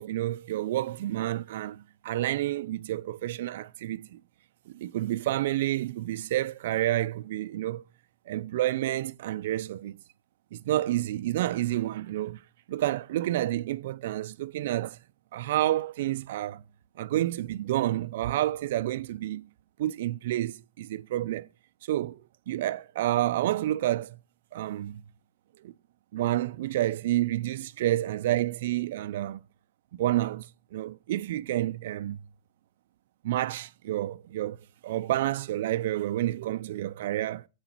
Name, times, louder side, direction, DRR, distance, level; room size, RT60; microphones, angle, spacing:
voice 1, 0.0-4.2 4.7-7.8 8.3-10.0 10.5-12.4 12.7-15.0 15.3-16.6 17.0-19.5 19.8-21.5 21.8-22.2 22.5-24.2 24.5-25.0 25.6-25.7 26.1-29.4 29.9-30.5 30.7-32.2 33.2-34.6 34.8-37.5, right 14 dB, 60° right, 0.5 m, -29 dB
15.5 x 8.2 x 4.5 m
hypercardioid pair, 135°, 0 cm